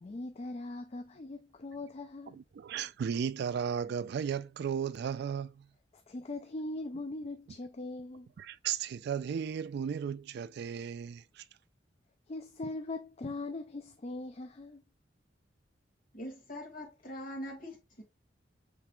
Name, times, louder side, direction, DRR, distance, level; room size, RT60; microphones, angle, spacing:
voice 1, 0.0-2.4 6.1-8.3 12.3-14.8, left 2 dB, 35° left, 0.4 m, -40 dB
voice 2, 2.3-5.7 8.4-11.4, right 7 dB, 60° right, 0.3 m, -35 dB
voice 3, 16.1-18.0, equal, 50° left, 1.8 m, -43 dB
6.0 x 3.3 x 2.3 m
head